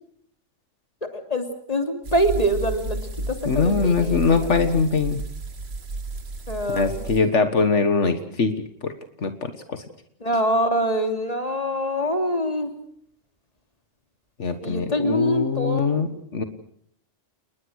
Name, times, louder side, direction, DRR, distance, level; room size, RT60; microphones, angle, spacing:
voice 1, 1.1-3.0 3.3-4.2 4.5-4.6 6.5-7.0 10.2-12.7 14.6-16.0, equal, 30° left, 5 dB, 3.1 m, -24 dB
sound 1, 2.0-7.2, right 2 dB, 60° right, 2.0 m, -32 dB
voice 2, 3.5-5.2 6.7-8.5 8.8-9.8 14.4-16.4, left 4 dB, 75° left, 9 dB, 1.8 m, -22 dB
30.0 x 20.5 x 6.4 m, 0.64 s
omnidirectional pair, 1.2 m